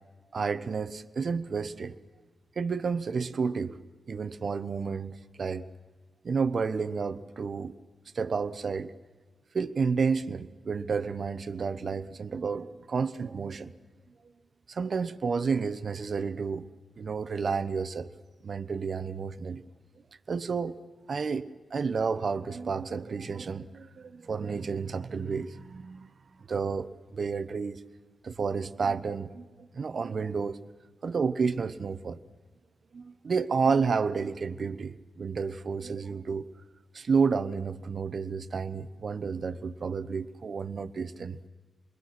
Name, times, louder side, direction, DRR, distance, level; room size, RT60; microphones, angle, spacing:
voice 1, 0.3-1.9 2.6-3.8 4.1-5.7 6.2-7.7 8.1-8.9 9.5-13.7 14.7-16.7 17.0-18.1 18.4-19.6 20.3-20.7 21.1-26.1 26.5-27.8 28.2-30.6 31.0-32.2 32.9-36.4 36.9-41.5, right 5 dB, 65° right, 0.9 m, -31 dB
28.0 x 20.5 x 6.0 m
cardioid pair, 60°, 0 cm